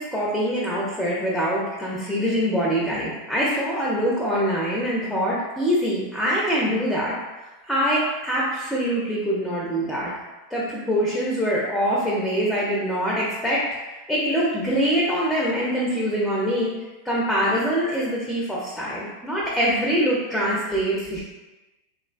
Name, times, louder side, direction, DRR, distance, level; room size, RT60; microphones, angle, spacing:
voice 1, 0.0-7.1 7.7-10.1 10.5-16.7 17.0-21.2, equal, ahead, -6 dB, 0.5 m, -24 dB
2.4 x 2.2 x 2.4 m, 1.1 s
hypercardioid pair, 100°, 0 cm